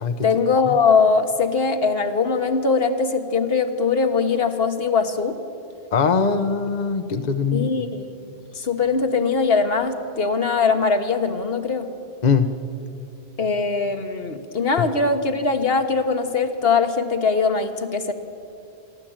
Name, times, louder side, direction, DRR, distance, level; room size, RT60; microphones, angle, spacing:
voice 1, 0.2-5.4 7.5-8.1 8.5-11.9 13.4-18.1, left 4 dB, 70° left, 7 dB, 1.5 m, -21 dB
voice 2, 5.9-7.7 12.2-12.5 14.8-14.9, left 5 dB, 45° left, 8 dB, 0.9 m, -21 dB
26.5 x 11.5 x 8.8 m, 2.7 s
omnidirectional pair, 1.1 m